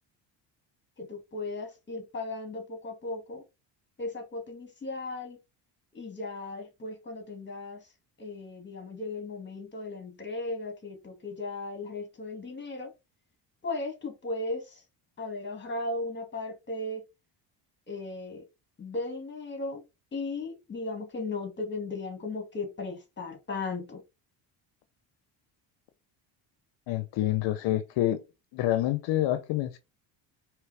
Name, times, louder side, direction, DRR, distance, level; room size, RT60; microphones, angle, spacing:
voice 1, 1.0-3.4 4.0-5.4 5.9-7.9 8.2-12.9 13.6-14.8 15.2-17.0 17.9-18.4 18.8-19.8 20.1-24.0, left 2 dB, 25° left, 1.9 m, -36 dB
voice 2, 26.9-28.2 28.5-29.8, left 14 dB, 70° left, 0.7 m, -27 dB
4.6 x 3.2 x 3.3 m
cardioid pair, 105°, 46 cm